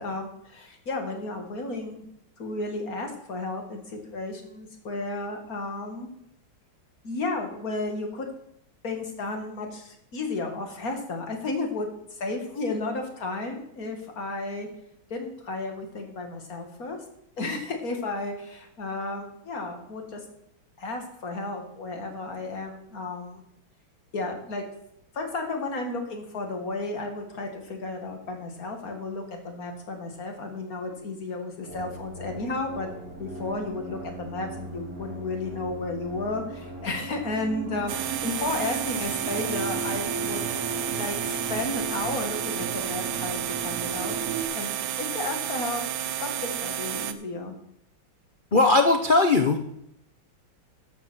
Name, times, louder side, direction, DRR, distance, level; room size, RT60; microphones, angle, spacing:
voice 1, 0.0-2.0 2.4-6.1 7.0-8.3 8.8-14.7 15.1-17.0 17.4-20.2 20.8-23.4 24.1-24.6 25.1-32.9 33.2-40.4 40.9-45.8 46.2-47.6, left 2 dB, 45° left, 3 dB, 2.4 m, -33 dB
sound 1, 31.7-44.5, right 3 dB, 50° right, 2.5 m, -36 dB
sound 2, 37.9-47.1, right 11 dB, 75° right, 1.5 m, -31 dB
voice 2, 48.5-49.6, left 3 dB, 75° left, 5 dB, 0.4 m, -19 dB
14.0 x 6.1 x 6.3 m, 0.76 s
omnidirectional pair, 2.2 m